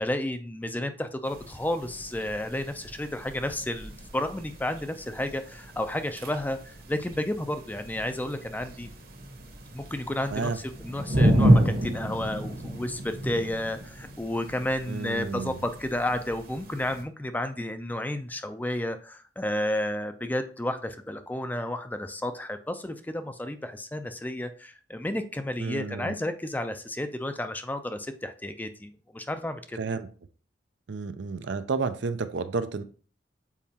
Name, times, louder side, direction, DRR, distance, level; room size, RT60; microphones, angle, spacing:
voice 1, 0.0-8.9 9.7-29.8, left 1 dB, 10° left, 9 dB, 0.4 m, -32 dB
sound 1, 1.2-17.0, right 1 dB, 50° right, 1.2 m, -30 dB
voice 2, 14.9-15.6 25.6-26.1 29.8-30.1 30.9-32.8, right 4 dB, 70° right, 11 dB, 0.5 m, -31 dB
7.2 x 4.7 x 2.8 m, 0.41 s
head